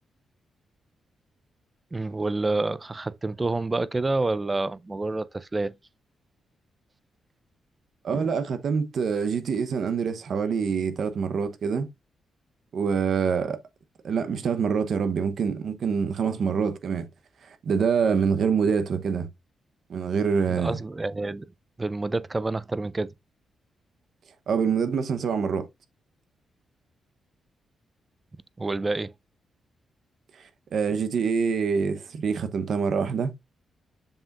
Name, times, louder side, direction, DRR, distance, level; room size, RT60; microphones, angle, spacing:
voice 1, 1.9-5.7 20.5-21.5 21.8-23.1 28.6-29.1, right 2 dB, 20° right, 0.4 m, -28 dB
voice 2, 8.0-11.9 12.7-13.6 14.0-17.1 17.5-19.3 19.9-20.8 24.5-25.7 30.7-33.3, right 6 dB, 60° right, 0.9 m, -25 dB
7.0 x 5.8 x 2.5 m
cardioid pair, 125°, 0 cm